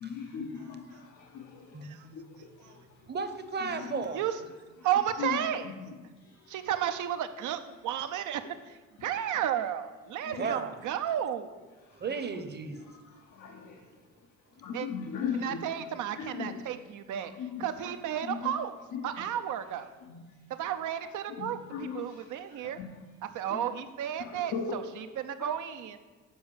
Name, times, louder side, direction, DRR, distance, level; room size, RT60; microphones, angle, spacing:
voice 1, 0.0-1.7 2.1-2.2 3.9-4.0 5.2-5.3 10.4-10.5 13.4-13.8 14.6-15.6 16.2-16.6 17.4-17.6 18.3-18.5 18.9-19.0 20.1-20.2 21.3-22.0 22.5-22.9 23.5-23.6 24.2-24.8 25.4-25.5, left 6 dB, 85° left, 1 dB, 0.8 m, -37 dB
voice 2, 3.1-4.2 10.4-10.8 11.9-12.9, right 5 dB, 35° right, 9 dB, 0.8 m, -34 dB
voice 3, 4.8-5.8 6.5-8.4 8.7-11.5 14.7-14.9 15.3-17.3 17.6-18.8 19.0-19.9 20.6-22.8 23.2-26.0, right 10 dB, 80° right, 9 dB, 0.7 m, -33 dB
7.1 x 4.7 x 7.0 m, 1.3 s
cardioid pair, 90°, 30 cm